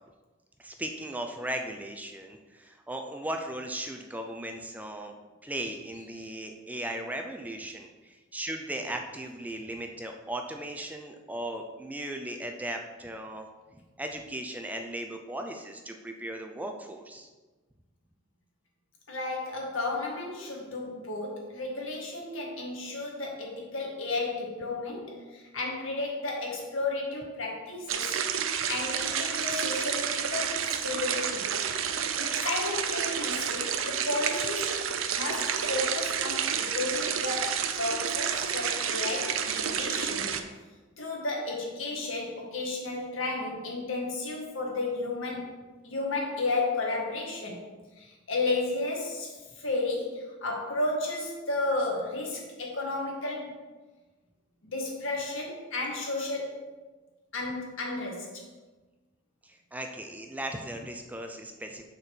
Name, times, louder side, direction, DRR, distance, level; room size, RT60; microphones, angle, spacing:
voice 1, 0.6-5.1 5.4-13.5 14.0-17.3 31.7-31.8 59.4-61.8, right 1 dB, 10° right, 4 dB, 0.5 m, -37 dB
voice 2, 19.1-28.2 28.7-31.5 32.2-34.7 35.1-40.3 41.0-45.5 45.8-47.6 48.0-53.5 54.6-56.5 57.3-58.4, left 2 dB, 70° left, -1 dB, 1.8 m, -33 dB
sound 1, 27.9-40.4, right 7 dB, 80° right, 0.6 m, -30 dB
6.5 x 4.4 x 6.0 m, 1.2 s
head